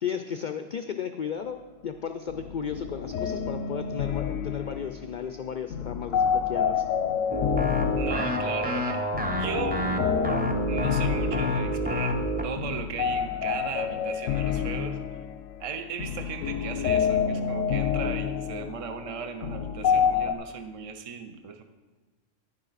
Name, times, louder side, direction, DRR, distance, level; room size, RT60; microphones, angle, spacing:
voice 1, 0.0-6.8, left 7 dB, 70° left, 7 dB, 0.4 m, -34 dB
sound 1, 2.3-20.3, left 7 dB, 90° left, 1.0 m, -29 dB
sound 2, 7.3-12.6, equal, 10° right, 0.6 m, -28 dB
voice 2, 8.0-9.9 10.6-15.0 15.6-21.6, right 5 dB, 50° right, 6 dB, 0.4 m, -37 dB
10.5 x 9.5 x 4.0 m, 1.2 s
omnidirectional pair, 1.3 m